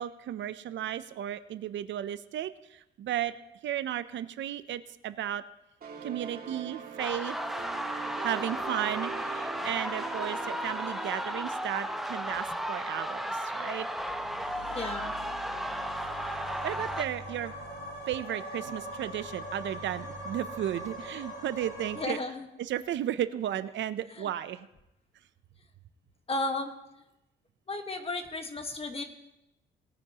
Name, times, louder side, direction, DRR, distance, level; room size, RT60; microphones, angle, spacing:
voice 1, 0.0-3.3 3.6-5.4 6.0-7.4 8.0-13.9 16.3-17.5 18.1-22.2 22.6-24.7, right 11 dB, 70° right, 13 dB, 0.6 m, -34 dB
sound 1, 5.8-13.3, right 6 dB, 50° right, 1.6 m, -43 dB
sound 2, 7.0-17.0, equal, ahead, 0.8 m, -34 dB
sound 3, 14.1-22.1, equal, 60° left, 4.5 m, -42 dB
voice 2, 14.7-15.1 22.0-22.4 24.2-24.3 26.3-26.7 27.7-29.0, left 2 dB, 30° left, 6 dB, 1.4 m, -33 dB
19.5 x 9.5 x 2.9 m, 0.88 s
cardioid pair, 90°, 20 cm